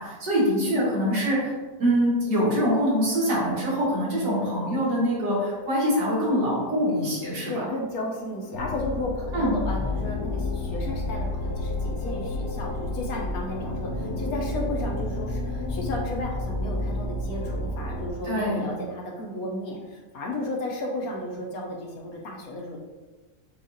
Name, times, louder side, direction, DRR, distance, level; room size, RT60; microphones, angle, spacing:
voice 1, 0.0-1.5 1.8-7.6 9.3-9.5 18.2-18.7, equal, 85° right, -6 dB, 2.1 m, -24 dB
voice 2, 0.6-1.1 7.5-22.8, left 1 dB, 65° left, 0 dB, 1.1 m, -34 dB
sound 1, 3.5-18.7, left 3 dB, 20° left, 0.4 m, -41 dB
sound 2, 8.5-18.1, left 2 dB, 85° left, 1.4 m, -31 dB
7.1 x 2.4 x 2.7 m, 1.3 s
omnidirectional pair, 1.8 m